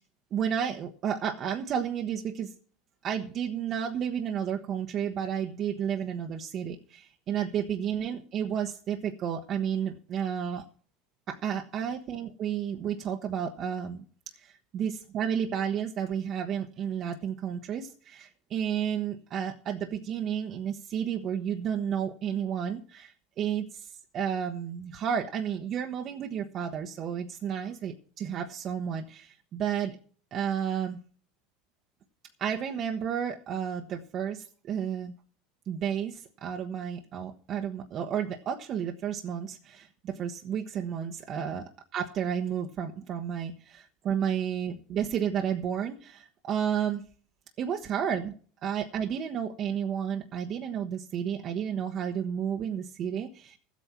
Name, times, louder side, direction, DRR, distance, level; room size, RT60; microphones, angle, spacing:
voice 1, 0.3-2.5 3.0-10.6 11.3-14.0 14.4-30.0 30.3-31.0 32.4-35.1 35.7-41.6 41.9-47.0 47.6-48.3 48.6-53.6, right 8 dB, 45° right, 3 dB, 1.1 m, -32 dB
13.0 x 8.4 x 5.8 m, 0.43 s
hypercardioid pair, 95°, 0 cm